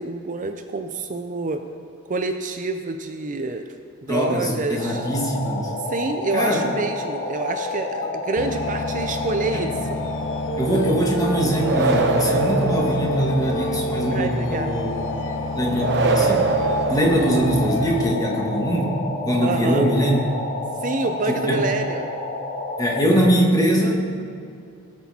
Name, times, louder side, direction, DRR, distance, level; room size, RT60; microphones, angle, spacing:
voice 1, 0.0-1.6 2.1-3.7 4.0-5.1 5.9-9.7 14.1-14.7 19.4-19.9 20.8-22.1, right 3 dB, 35° right, 6 dB, 0.5 m, -27 dB
voice 2, 4.1-5.7 6.3-6.6 9.5-9.7 10.6-14.9 15.5-16.5 16.9-19.0 19.2-20.2 21.3-21.6 22.8-24.0, equal, 15° left, -1 dB, 1.6 m, -22 dB
sound 1, 4.7-23.0, left 2 dB, 30° left, 1.3 m, -29 dB
sound 2, 8.4-18.1, left 3 dB, 60° left, 0.5 m, -32 dB
sound 3, 11.6-13.7 15.8-17.8, right 3 dB, 55° right, 0.8 m, -23 dB
18.5 x 6.2 x 4.2 m, 2.4 s
head